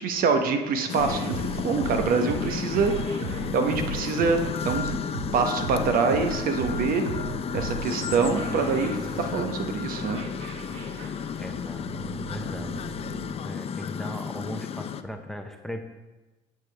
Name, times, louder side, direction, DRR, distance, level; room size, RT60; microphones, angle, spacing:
voice 1, 0.0-1.3 1.6-2.9 3.5-5.0 5.3-7.0 7.5-8.9 9.2-10.2, right 5 dB, 55° right, 6 dB, 1.0 m, -25 dB
sound 1, 0.9-15.0, left 7 dB, 35° left, 0.5 m, -33 dB
sound 2, 1.0-13.3, right 5 dB, 85° right, 0.8 m, -37 dB
voice 2, 11.4-13.1 13.4-15.9, equal, ahead, 6 dB, 0.7 m, -38 dB
9.4 x 6.7 x 3.4 m, 1.1 s
supercardioid pair, 80°, 17 cm